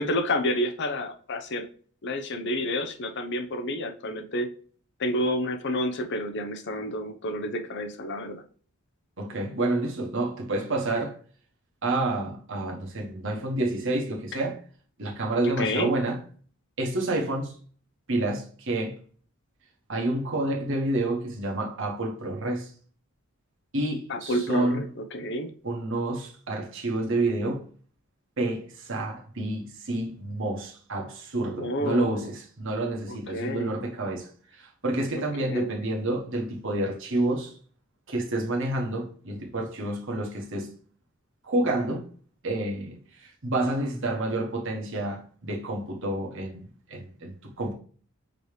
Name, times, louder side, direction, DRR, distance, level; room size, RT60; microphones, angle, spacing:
voice 1, 0.0-1.7 2.0-4.5 5.0-8.4 15.4-15.9 24.1-25.5 31.6-32.2 33.1-33.7 35.4-35.7, left 1 dB, 50° left, 0.7 m, -29 dB
voice 2, 9.2-11.2 11.8-14.6 15.0-16.2 16.8-17.5 18.1-18.9 19.9-22.7 23.7-24.9 25.6-27.6 28.4-34.3 34.6-37.5 38.1-40.7 41.4-42.0 42.4-47.7, right 2 dB, 55° right, 1.1 m, -29 dB
5.0 x 3.1 x 3.2 m
head